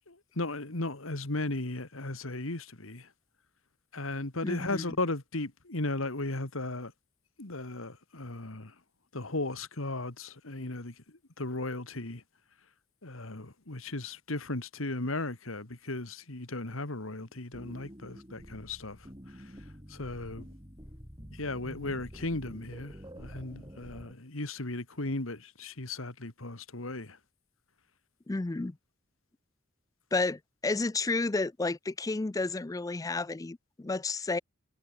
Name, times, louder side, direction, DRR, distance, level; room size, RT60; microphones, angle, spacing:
voice 1, 0.1-3.1 3.9-6.9 7.4-8.7 9.1-12.2 13.0-19.5 19.9-20.5 21.3-27.2, left 2 dB, 70° left, 2.4 m, -36 dB
voice 2, 4.4-4.9 28.3-28.8 30.1-34.4, left 3 dB, 15° left, 0.4 m, -31 dB
sound 1, 17.3-24.1, equal, 20° right, 7.7 m, -48 dB
head